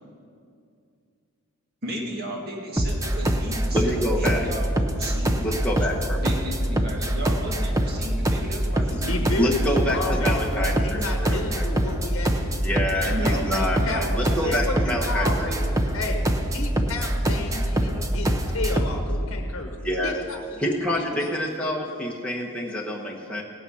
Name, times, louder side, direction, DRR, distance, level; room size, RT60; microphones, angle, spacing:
voice 1, 1.8-5.6 6.2-9.3 13.0-15.7, equal, 45° right, -1 dB, 2.1 m, -34 dB
sound 1, 2.8-19.1, right 1 dB, 15° right, 0.7 m, -24 dB
voice 2, 3.7-4.5 5.4-6.2 9.4-11.6 12.6-15.5 19.8-20.2 20.6-23.4, equal, 5° left, -3 dB, 1.2 m, -27 dB
voice 3, 9.1-12.8 13.6-14.0 14.4-15.5 15.9-16.2 16.5-19.8 20.0-20.6 21.0-21.3, left 3 dB, 60° left, 3 dB, 1.1 m, -32 dB
17.5 x 9.1 x 5.6 m, 2.4 s
head